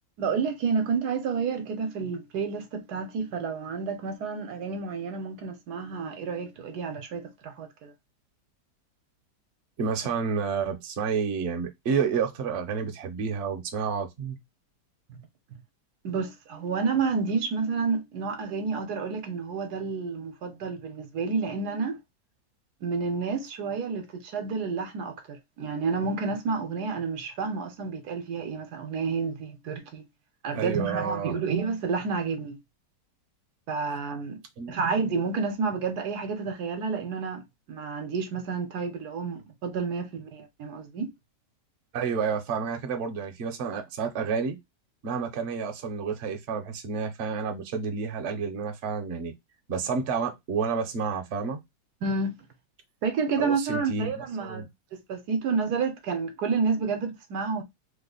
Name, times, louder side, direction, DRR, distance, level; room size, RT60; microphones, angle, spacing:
voice 1, 0.2-7.9 16.0-22.0 22.8-30.0 30.4-32.6 33.7-34.4 34.7-37.4 37.7-41.1 52.0-52.4 53.0-57.6, right 5 dB, 75° right, 1.2 m, -30 dB
voice 2, 9.8-14.4 30.5-31.4 34.6-34.7 41.9-44.6 45.0-49.3 49.7-51.6 53.4-54.7, right 5 dB, 55° right, 0.9 m, -30 dB
3.3 x 2.1 x 3.8 m
omnidirectional pair, 1.8 m